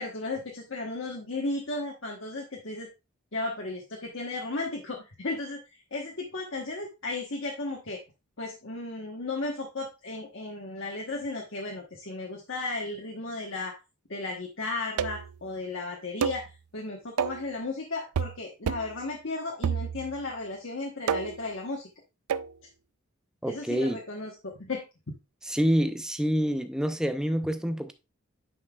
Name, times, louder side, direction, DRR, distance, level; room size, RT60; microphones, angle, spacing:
voice 1, 0.0-2.9 3.3-8.0 8.4-13.8 14.1-21.9 23.5-24.8, left 3 dB, 55° left, 1.2 m, -35 dB
sound 1, 15.0-15.4 16.2-16.5 17.2-17.5 18.2-18.4 18.7-19.0 19.6-20.2 21.1-21.5 22.3-22.5, right 7 dB, 80° right, 0.4 m, -29 dB
voice 2, 23.4-24.0 25.5-27.9, equal, 5° right, 0.4 m, -27 dB
9.7 x 5.4 x 2.3 m
head